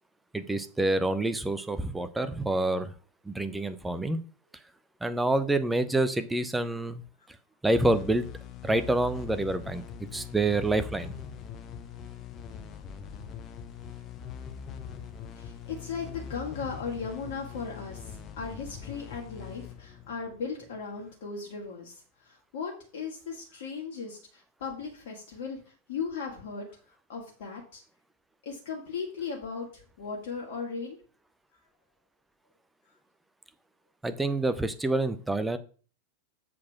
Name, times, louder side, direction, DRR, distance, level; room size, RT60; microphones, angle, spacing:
voice 1, 0.3-2.9 3.2-4.2 5.0-7.0 7.6-8.3 8.6-9.8 10.1-11.1 34.0-35.6, right 2 dB, 5° right, 11 dB, 0.8 m, -27 dB
sound 1, 7.7-21.0, left 7 dB, 30° left, 1.0 m, -42 dB
voice 2, 15.4-25.6 25.9-26.7 27.1-27.8 28.4-31.0, left 5 dB, 55° left, -1 dB, 1.9 m, -37 dB
7.5 x 4.2 x 5.8 m, 0.40 s
figure-of-eight pair, 90°, 0 cm